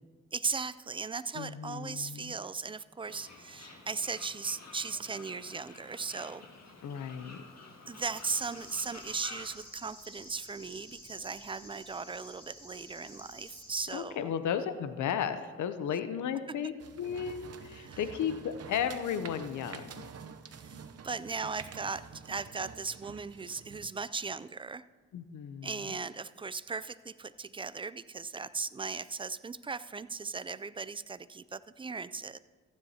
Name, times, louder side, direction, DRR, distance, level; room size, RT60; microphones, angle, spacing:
voice 1, 0.3-6.4 7.9-14.3 15.9-16.0 16.6-16.7 17.7-18.1 20.6-20.8 21.0-24.9 25.6-32.4, right 4 dB, 20° right, 16 dB, 0.3 m, -38 dB
voice 2, 1.3-2.4 6.8-7.4 13.9-20.1 25.1-26.0, left 8 dB, 80° left, 11 dB, 0.7 m, -34 dB
Fowl, 3.0-9.5, left 3 dB, 60° left, 1.8 m, -51 dB
sound 1, 8.2-14.0, left 1 dB, 20° left, 3.0 m, -52 dB
sound 2, 16.8-23.9, right 6 dB, 55° right, 0.8 m, -48 dB
15.0 x 9.5 x 2.8 m, 1.4 s
cardioid pair, 60°, 29 cm